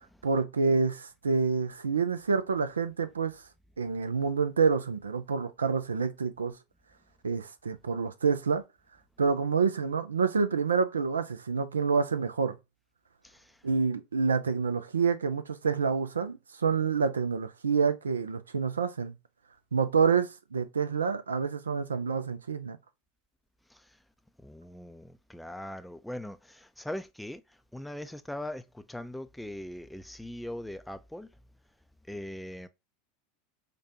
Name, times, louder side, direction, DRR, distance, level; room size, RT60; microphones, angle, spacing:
voice 1, 0.2-3.4 3.8-6.6 7.2-8.6 9.2-12.6 13.6-19.1 19.7-22.8, right 5 dB, 85° right, 0.4 m, -28 dB
voice 2, 13.2-13.6 23.7-23.9 24.4-27.4 27.7-31.3 32.1-32.7, left 1 dB, 5° left, 0.4 m, -40 dB
4.9 x 2.2 x 2.7 m
hypercardioid pair, 85°, 0 cm